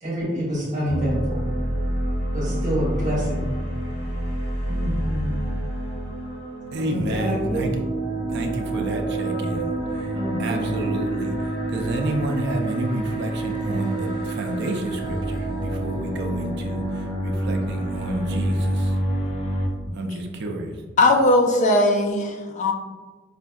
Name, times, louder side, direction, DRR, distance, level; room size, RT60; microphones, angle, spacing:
voice 1, 0.0-1.4 2.3-3.5 4.7-5.3 6.8-7.7 10.1-10.6, equal, 40° right, -6 dB, 1.1 m, -27 dB
sound 1, 0.9-19.7, right 1 dB, 65° left, 1.1 m, -27 dB
voice 2, 6.7-7.8 8.3-19.0 19.9-21.0, right 1 dB, 60° right, 3 dB, 0.4 m, -30 dB
voice 3, 21.0-22.7, left 1 dB, 40° left, 3 dB, 0.4 m, -19 dB
4.8 x 2.6 x 2.3 m, 1.3 s
head